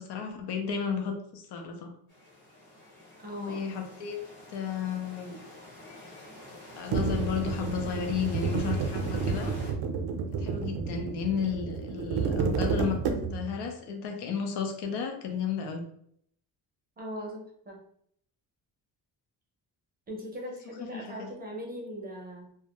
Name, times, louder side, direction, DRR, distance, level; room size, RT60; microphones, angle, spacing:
voice 1, 0.0-1.9 3.4-4.2 4.5-5.4 6.8-9.5 10.3-13.0 13.3-15.9 20.9-21.3, left 6 dB, 90° left, 4 dB, 0.6 m, -33 dB
sound 1, 2.1-9.7, left 1 dB, 30° left, 1.0 m, -47 dB
voice 2, 3.2-3.6 17.0-17.8 20.1-22.6, equal, 25° right, -1 dB, 0.5 m, -39 dB
sound 2, 6.9-13.6, right 5 dB, 75° right, 0.5 m, -30 dB
2.3 x 2.1 x 2.8 m, 0.66 s
cardioid pair, 175°, 39 cm